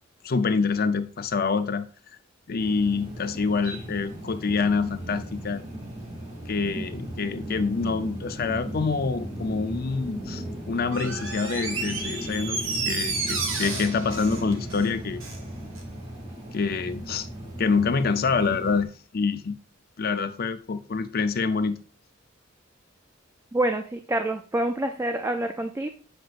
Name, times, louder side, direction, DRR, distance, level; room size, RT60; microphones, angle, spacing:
voice 1, 0.2-1.9 2.5-5.6 6.5-12.6 12.9-15.2 16.5-17.3 17.6-19.6 20.0-21.8, left 4 dB, 50° left, 0.5 m, -26 dB
sound 1, 2.6-18.9, right 1 dB, 35° right, 2.3 m, -37 dB
sound 2, 8.2-16.8, left 2 dB, 5° left, 0.8 m, -42 dB
Door, 10.9-15.4 15.8-15.9, right 4 dB, 70° right, 1.1 m, -32 dB
voice 2, 23.5-25.9, right 1 dB, 15° right, 0.3 m, -27 dB
7.9 x 5.2 x 2.5 m
head